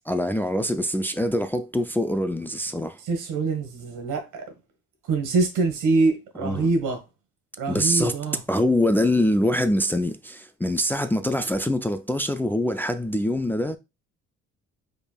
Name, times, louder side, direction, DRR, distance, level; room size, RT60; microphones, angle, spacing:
voice 1, 0.1-3.0 6.4-6.7 7.7-8.2 8.5-13.8, left 1 dB, 5° left, 0.3 m, -24 dB
voice 2, 3.1-4.4 5.1-7.0 7.6-8.4, right 3 dB, 85° right, 1.3 m, -24 dB
5.1 x 3.4 x 2.3 m
cardioid pair, 90°, 30 cm